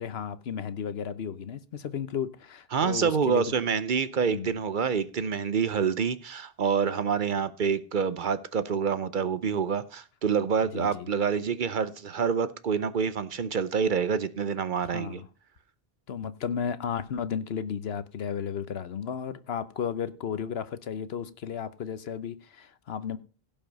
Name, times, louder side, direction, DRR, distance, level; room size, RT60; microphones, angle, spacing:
voice 1, 0.0-3.5 4.3-4.6 10.7-11.1 14.8-15.3 16.1-23.2, left 7 dB, 80° left, 1.1 m, -34 dB
voice 2, 2.7-15.2, right 6 dB, 55° right, 0.8 m, -27 dB
16.5 x 5.6 x 5.3 m
omnidirectional pair, 1.0 m